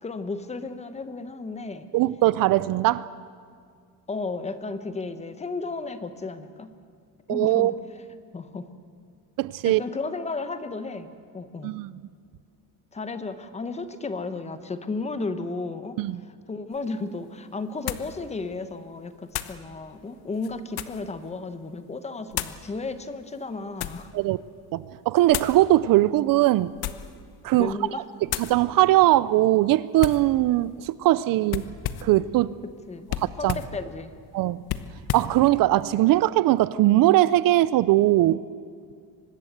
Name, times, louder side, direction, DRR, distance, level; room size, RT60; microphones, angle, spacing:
voice 1, 0.0-1.9 4.1-6.7 7.3-7.7 8.3-8.7 9.6-11.7 12.9-16.0 16.5-24.1 27.6-28.0 32.9-33.1 33.4-34.1, left 3 dB, 15° left, 10 dB, 1.0 m, -33 dB
voice 2, 1.9-3.0 7.3-7.7 9.4-9.8 11.6-11.9 16.0-16.2 24.1-24.4 24.7-26.7 27.4-27.7 28.4-31.7 32.0-32.5 33.2-33.6 34.3-34.6 35.1-38.4, right 16 dB, 60° right, 18 dB, 0.6 m, -20 dB
sound 1, 16.7-16.8 17.9-18.2 19.3-19.6 20.3-21.1 22.3-22.6 23.4-24.1 25.3-25.6 26.7-27.2 27.6-27.9 28.3-28.6 30.0-30.3 31.5-32.2 33.1-33.8 34.7-35.4, left 13 dB, 70° left, 1.1 m, -32 dB
24.5 x 19.5 x 8.1 m, 2.2 s
cardioid pair, 175°, 39 cm